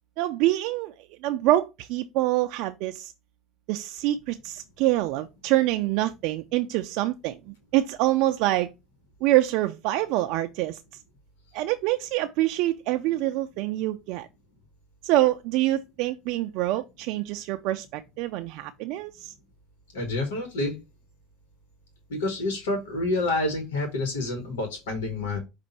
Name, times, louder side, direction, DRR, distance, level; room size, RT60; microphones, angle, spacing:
voice 1, 0.2-0.9 1.2-3.1 3.7-8.7 9.2-10.8 11.5-14.3 15.0-19.3, right 15 dB, 65° right, 0.3 m, -25 dB
voice 2, 19.9-20.8 22.1-25.4, left 2 dB, 90° left, 1.3 m, -28 dB
5.3 x 2.4 x 4.1 m
supercardioid pair, 105°, 0 cm